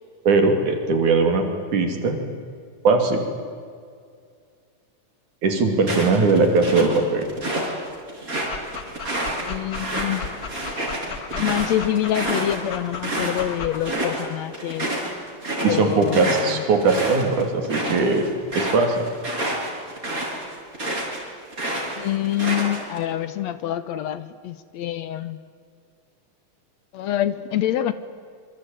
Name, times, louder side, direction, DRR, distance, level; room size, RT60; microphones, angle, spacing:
voice 1, 0.3-1.5 1.7-2.2 2.8-3.2 5.4-7.2 15.6-18.3 18.6-19.1, right 3 dB, 70° right, 5 dB, 4.2 m, -19 dB
sound 1, 5.8-7.7 8.1-13.4 13.7-14.2 14.5-21.2 21.5-23.0, right 1 dB, 25° right, 5.9 m, -28 dB
Dog, 8.4-13.8, left 5 dB, 40° left, 1.5 m, -36 dB
voice 2, 9.4-10.3 11.3-14.9 15.6-16.6 22.0-25.4 26.9-27.9, left 11 dB, 70° left, 14 dB, 1.9 m, -26 dB
26.0 x 25.0 x 9.1 m, 2.2 s
omnidirectional pair, 3.6 m